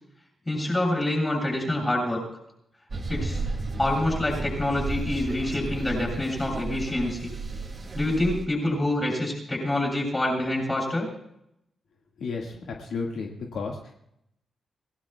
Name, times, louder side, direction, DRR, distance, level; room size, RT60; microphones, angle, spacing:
voice 1, 0.5-2.2 3.1-3.4 3.8-7.3 7.9-11.1, left 1 dB, 15° left, -1 dB, 7.7 m, -26 dB
sound 1, 2.9-8.4, right 3 dB, 35° right, 2.4 m, -33 dB
voice 2, 12.2-13.9, left 4 dB, 75° left, 0 dB, 1.8 m, -33 dB
27.0 x 17.5 x 2.3 m, 0.78 s
wide cardioid pair, 120°, 0 cm